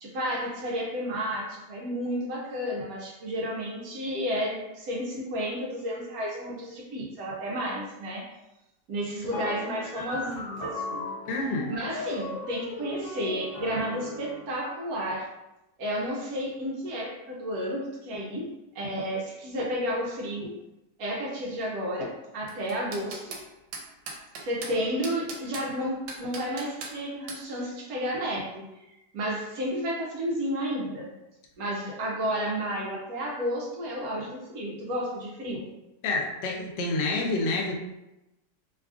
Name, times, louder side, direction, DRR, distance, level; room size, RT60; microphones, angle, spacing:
voice 1, 0.0-8.3 8.9-11.1 11.7-15.3 15.8-20.6 21.0-23.4 24.4-28.7 29.1-31.1 31.6-35.7, equal, 70° right, -3 dB, 1.0 m, -32 dB
sound 1, 9.3-14.5, left 2 dB, 55° left, 0.9 m, -37 dB
voice 2, 11.3-11.7 36.0-37.7, left 2 dB, 90° left, 0 dB, 1.3 m, -28 dB
sound 2, 22.5-23.4 23.7-24.7 25.0-25.7 26.1-26.9 27.3-27.4, right 3 dB, 85° right, 1.2 m, -38 dB
3.1 x 2.4 x 2.4 m, 0.94 s
omnidirectional pair, 1.9 m